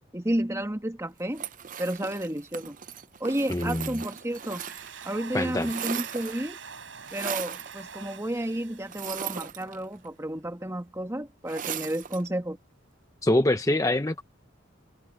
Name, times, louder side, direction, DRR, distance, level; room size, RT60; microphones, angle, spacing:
voice 1, 0.1-1.5 1.8-2.8 3.2-4.6 5.0-6.6 7.1-12.6, right 1 dB, 15° right, 1.8 m, -31 dB
sound 1, 1.3-5.1 5.4-6.6 7.1-7.7 8.9-10.1 11.5-12.3, right 8 dB, 40° right, 0.6 m, -37 dB
voice 2, 3.5-3.9 5.3-5.7 13.2-14.2, left 1 dB, 15° left, 0.8 m, -24 dB
Domestic sounds home sounds, 4.0-9.6, right 6 dB, 70° right, 7.0 m, -45 dB
head